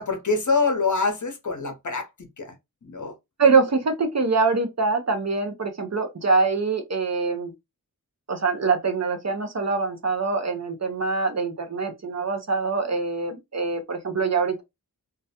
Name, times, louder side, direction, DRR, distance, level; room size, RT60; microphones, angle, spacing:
voice 1, 0.0-2.1 2.4-2.5 2.8-3.1, left 4 dB, 50° left, 0.7 m, -25 dB
voice 2, 3.4-7.5 8.3-14.6, right 4 dB, 45° right, 0.6 m, -24 dB
2.3 x 2.1 x 2.7 m
wide cardioid pair, 55°, 38 cm